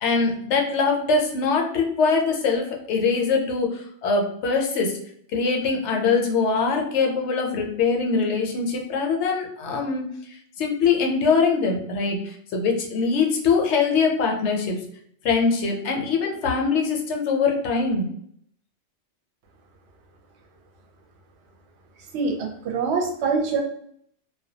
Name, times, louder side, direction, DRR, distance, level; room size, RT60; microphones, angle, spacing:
voice 1, 0.0-4.9 5.3-10.1 10.6-14.8 15.2-18.1, left 4 dB, 75° left, 1 dB, 0.8 m, -22 dB
voice 2, 22.1-23.6, right 4 dB, 70° right, 3 dB, 0.8 m, -24 dB
2.2 x 2.1 x 2.7 m, 0.65 s
omnidirectional pair, 1.2 m